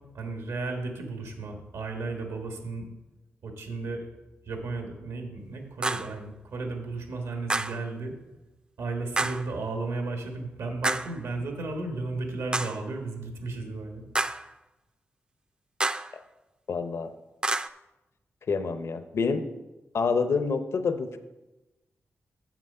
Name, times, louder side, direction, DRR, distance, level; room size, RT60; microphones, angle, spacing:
voice 1, 0.1-2.9 3.4-4.1 4.5-8.1 8.8-14.1, right 3 dB, 90° right, 3 dB, 1.4 m, -34 dB
sound 1, 5.8-6.1 7.5-7.9 9.2-9.5 10.8-11.2 12.5-12.9 14.1-14.5 15.8-16.2 17.4-17.7, right 2 dB, 20° right, 0.3 m, -29 dB
voice 2, 16.7-17.1 18.5-19.5 19.9-21.2, left 5 dB, 65° left, 10 dB, 0.7 m, -27 dB
7.3 x 6.0 x 5.4 m, 1.0 s
cardioid pair, 70°, 5 cm